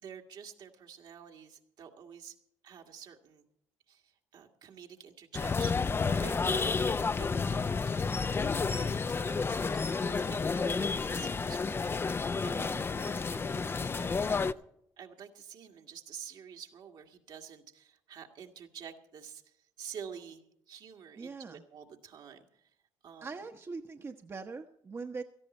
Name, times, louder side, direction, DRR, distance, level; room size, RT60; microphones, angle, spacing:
voice 1, 0.0-2.4 2.6-3.4 3.9-6.6 7.2-14.6 15.0-22.8 23.0-23.5, right 7 dB, 65° right, 3 dB, 1.8 m, -49 dB
sound 1, 5.3-14.5, left 4 dB, 30° left, 0.5 m, -31 dB
voice 2, 6.5-6.9 12.5-12.8 21.2-21.6 23.2-25.2, right 4 dB, 35° right, 5 dB, 1.0 m, -42 dB
17.5 x 13.5 x 4.3 m, 0.75 s
supercardioid pair, 65°, 8 cm